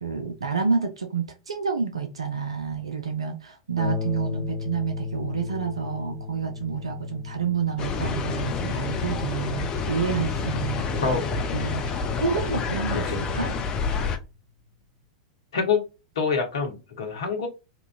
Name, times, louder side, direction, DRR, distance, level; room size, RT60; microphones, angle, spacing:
voice 1, 0.0-11.1 11.5-13.5, right 5 dB, 75° right, 0.4 m, -29 dB
Harp, 3.8-12.9 13.8-13.9 14.4-14.5, left 5 dB, 10° right, 1.3 m, -36 dB
sound 1, 7.8-14.2, left 4 dB, 30° left, 0.5 m, -28 dB
voice 2, 12.9-13.2 15.5-15.8 16.2-17.5, left 5 dB, 65° left, 0.8 m, -26 dB
2.9 x 2.4 x 2.4 m
figure-of-eight pair, 95°, 3 cm